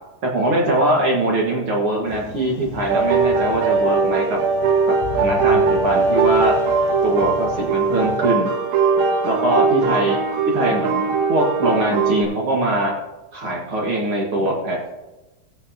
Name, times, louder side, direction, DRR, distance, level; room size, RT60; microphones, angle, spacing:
voice 1, 0.2-4.4 4.9-6.6 7.0-8.5 9.2-10.2 10.5-12.9 13.3-14.9, right 1 dB, 60° right, -1 dB, 1.4 m, -22 dB
sound 1, 2.1-8.2, left 6 dB, 85° left, 3.1 m, -37 dB
sound 2, 2.9-12.2, right 4 dB, 90° right, 3.3 m, -20 dB
19.5 x 8.3 x 2.8 m, 1.1 s
omnidirectional pair, 4.9 m